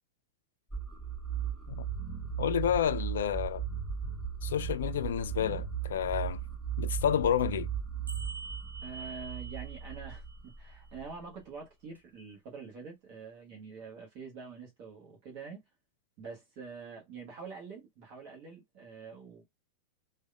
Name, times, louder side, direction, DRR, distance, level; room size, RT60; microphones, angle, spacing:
sound 1, 0.7-11.6, right 8 dB, 5° right, 1.6 m, -37 dB
voice 1, 2.4-3.6 4.4-6.4 6.8-7.7, left 9 dB, 60° left, 0.3 m, -30 dB
sound 2, 7.4-7.5 8.1-10.7 11.9-12.0, right 3 dB, 80° right, 0.4 m, -46 dB
voice 2, 8.8-15.6 16.2-19.4, right 5 dB, 40° right, 1.1 m, -46 dB
3.3 x 2.2 x 2.3 m
figure-of-eight pair, 90°, 0 cm